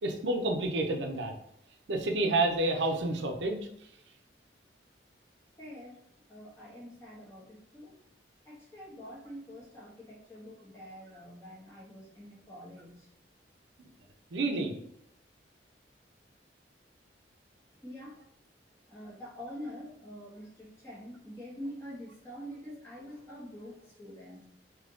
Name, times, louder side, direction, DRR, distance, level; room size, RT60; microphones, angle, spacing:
voice 1, 0.0-1.3 1.9-3.6 14.3-14.7, right 2 dB, 85° right, 3 dB, 0.6 m, -29 dB
voice 2, 5.6-6.0 6.3-7.9 8.4-13.1 17.8-18.2 18.9-24.4, equal, 15° left, -6 dB, 1.2 m, -46 dB
3.5 x 2.9 x 3.7 m, 0.76 s
head